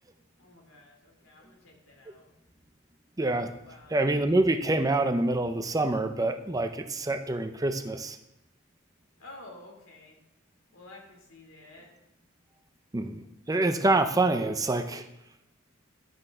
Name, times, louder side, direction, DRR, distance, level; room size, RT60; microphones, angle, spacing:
voice 1, 0.4-2.3 3.6-4.1 9.2-10.2 10.7-12.0, left 2 dB, 80° left, 0 dB, 3.1 m, -51 dB
voice 2, 3.2-3.5 3.9-8.2 12.9-15.0, right 2 dB, 15° right, 8 dB, 0.5 m, -26 dB
11.0 x 6.6 x 5.6 m, 0.86 s
head